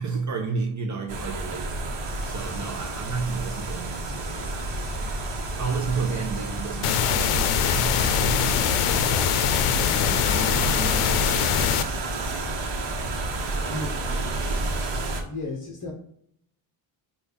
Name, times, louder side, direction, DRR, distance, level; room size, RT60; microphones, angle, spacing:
voice 1, 0.0-1.9 2.2-4.7 5.6-9.3 10.0-12.0 14.9-15.3, right 5 dB, 40° right, 0.5 m, -32 dB
sound 1, 1.1-15.2, right 2 dB, 55° right, 1.0 m, -30 dB
sound 2, 2.0-12.0, left 2 dB, 15° left, 1.6 m, -49 dB
sound 3, 6.8-11.8, left 8 dB, 90° left, 0.6 m, -23 dB
voice 2, 13.7-14.4 15.2-15.9, left 2 dB, 40° left, 1.0 m, -34 dB
5.1 x 2.4 x 3.9 m
cardioid pair, 125°, 49 cm